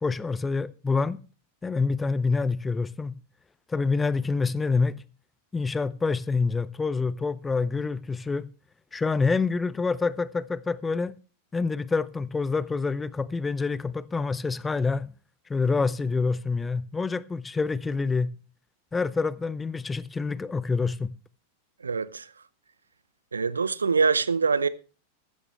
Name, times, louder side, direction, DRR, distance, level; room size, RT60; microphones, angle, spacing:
voice 1, 0.0-1.2 1.6-3.1 3.7-5.0 5.5-8.5 8.9-11.1 11.5-15.1 15.5-18.3 18.9-21.1, left 4 dB, 15° left, 0.6 m, -27 dB
voice 2, 21.8-22.3 23.3-24.7, right 5 dB, 75° right, 0.7 m, -24 dB
15.0 x 13.0 x 3.2 m
figure-of-eight pair, 90°, 0 cm